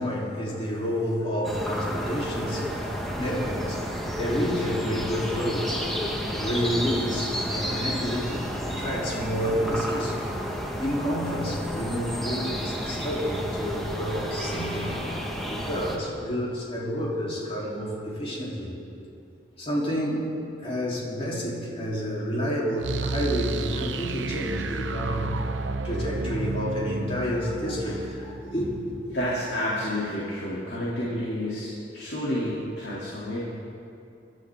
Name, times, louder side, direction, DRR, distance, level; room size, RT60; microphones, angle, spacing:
voice 1, 0.0-3.9 4.1-14.9 15.4-18.7 19.6-20.3 20.6-25.3 25.8-28.7, equal, 35° left, -5 dB, 4.0 m, -29 dB
sound 1, 1.4-16.0, equal, ahead, 1.8 m, -31 dB
sound 2, 22.8-29.6, right 3 dB, 85° right, 0.7 m, -32 dB
voice 2, 29.1-33.4, left 1 dB, 65° left, -8 dB, 3.4 m, -30 dB
25.5 x 13.0 x 3.9 m, 2.5 s
head